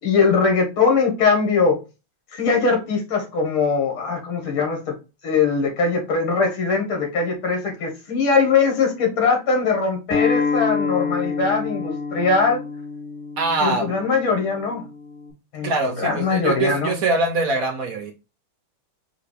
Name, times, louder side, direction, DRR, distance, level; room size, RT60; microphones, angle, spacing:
voice 1, 0.0-1.8 2.3-4.9 5.2-12.6 13.6-14.8 15.5-15.7 16.0-16.9, left 5 dB, 80° left, 2.4 m, -21 dB
Acoustic guitar, 10.1-15.3, left 5 dB, 40° left, 2.5 m, -27 dB
voice 2, 13.4-13.9 15.6-18.1, right 3 dB, 65° right, 0.8 m, -23 dB
5.0 x 2.9 x 3.2 m
omnidirectional pair, 2.3 m